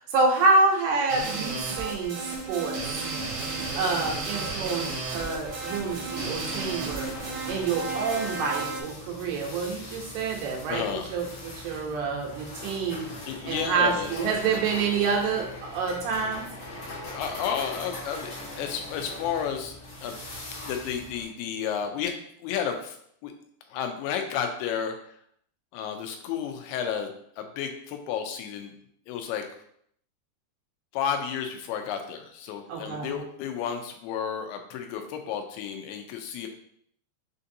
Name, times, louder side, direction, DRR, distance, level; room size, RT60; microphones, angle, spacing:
voice 1, 0.0-2.8 3.8-7.1 7.5-13.1 13.5-16.4 32.7-33.2, right 4 dB, 90° right, 0 dB, 2.9 m, -27 dB
sound 1, 1.1-8.8, right 3 dB, 75° right, 1.7 m, -33 dB
sound 2, 3.0-21.2, left 1 dB, 60° left, 1.5 m, -41 dB
voice 2, 10.7-11.1 13.3-14.1 17.1-20.2 20.6-22.2 22.4-23.0 23.2-23.3 23.7-24.9 25.7-28.7 29.1-29.4 30.9-36.5, left 8 dB, 90° left, 5 dB, 2.6 m, -32 dB
6.5 x 2.6 x 2.7 m, 0.68 s
omnidirectional pair, 4.5 m